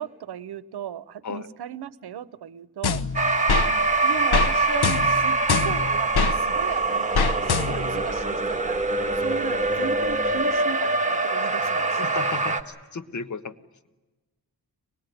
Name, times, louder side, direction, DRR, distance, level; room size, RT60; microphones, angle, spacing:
voice 1, 0.0-3.0 3.7-8.8 9.2-12.2, right 9 dB, 90° right, 18 dB, 0.9 m, -36 dB
sound 1, 2.8-3.7 4.3-4.5 4.8-6.4 7.2-8.0, left 5 dB, 90° left, 1.0 m, -24 dB
sound 2, 3.1-12.6, right 3 dB, 20° right, 1.7 m, -24 dB
sound 3, 5.3-10.5, equal, 20° left, 7.1 m, -47 dB
voice 2, 12.0-13.6, left 4 dB, 50° left, 11 dB, 1.3 m, -34 dB
24.0 x 20.0 x 9.3 m, 1.2 s
cardioid pair, 80°, 38 cm